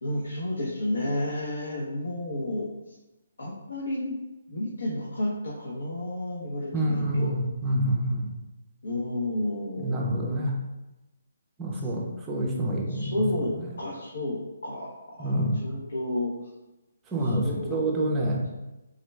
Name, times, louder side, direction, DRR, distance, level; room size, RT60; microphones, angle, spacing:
voice 1, 0.0-2.9 3.4-4.2 4.5-7.3 8.8-10.2 11.7-11.9 12.9-13.5 13.8-14.4 14.6-16.5 17.2-17.9, left 1 dB, 90° left, -4 dB, 0.8 m, -31 dB
voice 2, 6.7-8.3 9.8-10.6 11.6-13.2 15.2-15.7 17.1-18.4, right 1 dB, 10° right, -2 dB, 0.4 m, -27 dB
3.7 x 2.2 x 3.2 m, 1.0 s
hypercardioid pair, 170°, 0 cm